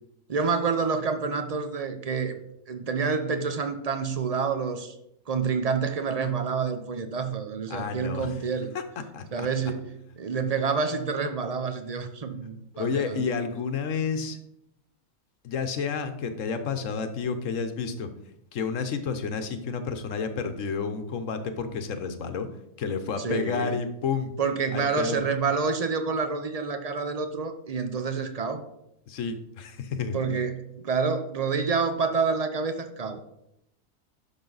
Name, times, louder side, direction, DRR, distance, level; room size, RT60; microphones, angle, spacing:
voice 1, 0.3-2.4 2.7-5.0 5.3-8.7 9.3-13.3 23.2-23.8 24.4-28.6 30.1-33.2, right 5 dB, 40° right, 8 dB, 0.6 m, -28 dB
voice 2, 7.7-8.3 9.1-9.5 12.7-14.4 15.4-18.1 18.5-22.5 22.8-24.3 24.7-25.2 29.1-30.2, left 5 dB, 65° left, 9 dB, 1.2 m, -30 dB
10.5 x 6.2 x 4.0 m, 0.80 s
omnidirectional pair, 1.5 m